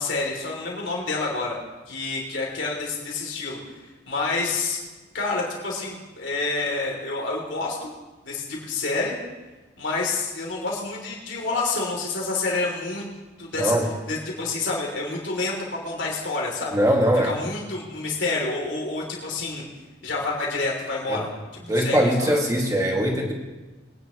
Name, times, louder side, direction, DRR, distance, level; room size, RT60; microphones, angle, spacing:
voice 1, 0.0-1.6 1.9-3.6 4.1-4.8 5.1-7.9 8.2-9.2 9.8-13.1 13.4-13.8 14.1-15.6 15.8-16.8 17.2-19.6 20.0-21.3 21.7-22.4, left 3 dB, 85° left, -2 dB, 3.1 m, -28 dB
voice 2, 16.7-17.3 21.1-21.2 21.7-23.3, equal, 20° right, -1 dB, 2.0 m, -21 dB
22.0 x 10.0 x 3.1 m, 1.2 s
head